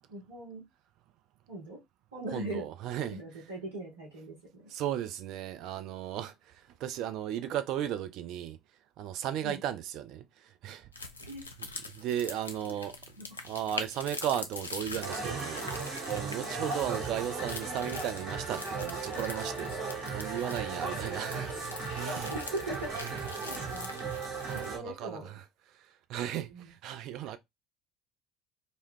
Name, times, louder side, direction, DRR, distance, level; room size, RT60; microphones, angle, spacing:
voice 1, 0.1-0.7 1.5-1.8 2.1-2.6 3.0-4.7 9.4-9.5 11.2-11.4 13.2-13.3 21.0-21.1 22.5-23.0 23.5-24.0 24.5-25.3 26.5-26.7, right 1 dB, 80° right, 0.9 m, -40 dB
voice 2, 2.3-3.2 4.7-8.6 9.0-10.9 11.9-13.0 13.4-22.3 23.0-23.3 24.5-25.4 25.7-27.4, right 11 dB, 60° right, 0.3 m, -36 dB
sound 1, 10.9-24.7, left 3 dB, 90° left, 0.3 m, -44 dB
sound 2, 15.0-24.8, right 4 dB, 45° right, 1.2 m, -36 dB
2.2 x 2.1 x 3.4 m
figure-of-eight pair, 60°, 0 cm